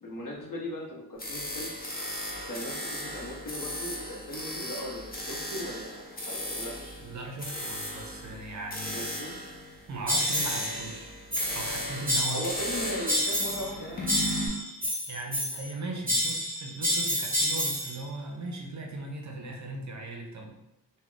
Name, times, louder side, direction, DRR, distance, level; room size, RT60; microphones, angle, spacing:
voice 1, 0.0-1.7 2.5-7.0 8.9-9.4 12.3-14.1, equal, 60° left, -2 dB, 0.7 m, -38 dB
sound 1, 1.2-14.5, left 1 dB, 25° left, 0.6 m, -36 dB
voice 2, 7.0-9.1 9.9-11.1 11.5-12.5 15.1-20.6, right 2 dB, 50° right, 1 dB, 0.5 m, -38 dB
sound 2, 10.1-10.7 11.3-11.7 12.1-12.7 13.1-13.7 14.1-15.7 16.1-18.0, equal, 25° right, 0.8 m, -29 dB
2.3 x 2.1 x 3.7 m, 0.89 s
wide cardioid pair, 175°, 37 cm